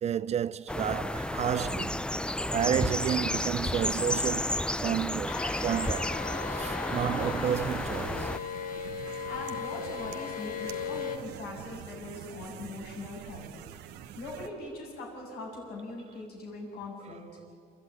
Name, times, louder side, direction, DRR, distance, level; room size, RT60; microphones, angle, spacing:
voice 1, 0.0-6.2 6.5-8.3, right 9 dB, 40° right, 0.5 m, -31 dB
sound 1, 0.7-8.4, left 1 dB, 5° left, 0.5 m, -32 dB
sound 2, 5.3-11.2, left 7 dB, 55° left, 1.5 m, -38 dB
sound 3, 7.4-14.5, right 10 dB, 85° right, 1.1 m, -46 dB
voice 2, 9.0-17.2, left 2 dB, 70° left, 7.6 m, -41 dB
29.0 x 13.0 x 9.5 m
cardioid pair, 110°, 17 cm